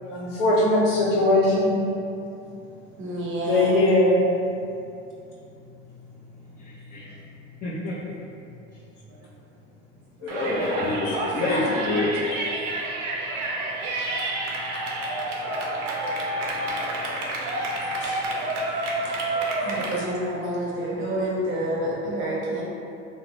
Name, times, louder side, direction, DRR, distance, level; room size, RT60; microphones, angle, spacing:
voice 1, 0.1-1.7 3.4-4.2 11.0-11.2 12.3-12.4 18.0-18.1 19.9-20.0, left 1 dB, 60° left, -6 dB, 0.8 m, -20 dB
voice 2, 3.0-3.7 9.1-9.2 19.6-22.6, right 1 dB, 35° right, -5 dB, 0.7 m, -28 dB
voice 3, 6.5-7.1 7.6-7.9 8.7-8.8 10.2-12.1, left 2 dB, 25° left, -7 dB, 0.4 m, -28 dB
Yell, 10.3-20.0, right 2 dB, 85° right, 0.6 m, -29 dB
2.6 x 2.0 x 2.9 m, 2.6 s
hypercardioid pair, 90°, 36 cm